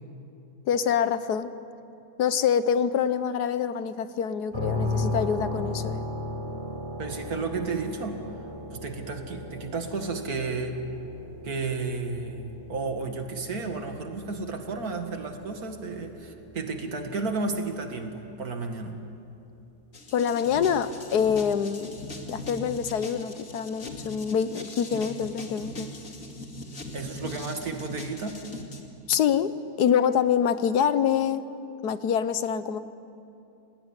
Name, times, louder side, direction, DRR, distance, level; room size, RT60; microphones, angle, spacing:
voice 1, 0.7-1.5 2.2-6.0 20.1-22.0 22.3-25.9 29.1-31.4 31.8-32.8, left 8 dB, 80° left, 13 dB, 1.5 m, -25 dB
sound 1, 4.5-18.3, left 2 dB, 20° right, 4.7 m, -36 dB
voice 2, 7.0-8.2 8.7-10.8 11.4-19.0 26.9-28.4, right 4 dB, 65° right, 5 dB, 2.5 m, -32 dB
sound 2, 19.9-28.8, left 1 dB, 55° left, 2.7 m, -40 dB
28.5 x 18.5 x 9.9 m, 2.7 s
omnidirectional pair, 1.7 m